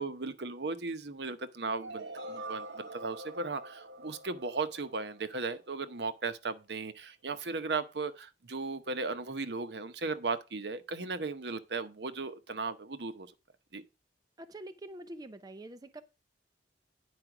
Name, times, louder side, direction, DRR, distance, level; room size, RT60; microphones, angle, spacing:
voice 1, 0.0-13.3 13.7-13.8, right 4 dB, 70° right, 0.9 m, -36 dB
sound 1, 1.8-5.7, right 2 dB, 85° right, 1.2 m, -45 dB
voice 2, 14.4-16.0, right 1 dB, 20° right, 0.5 m, -45 dB
9.6 x 4.9 x 5.9 m
head